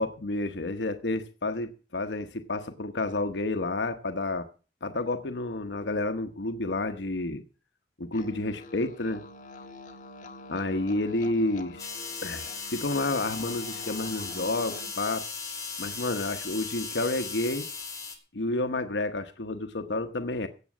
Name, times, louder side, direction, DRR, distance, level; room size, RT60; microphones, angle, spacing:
voice 1, 0.0-4.5 4.8-7.4 8.0-9.2 10.5-11.9 12.2-15.3 15.8-17.6 18.3-20.5, left 2 dB, 85° left, 1.0 m, -30 dB
sound 1, 8.1-14.9, left 2 dB, 45° left, 1.5 m, -45 dB
sound 2, 11.8-18.2, left 5 dB, 20° left, 2.6 m, -37 dB
16.5 x 7.5 x 6.1 m
head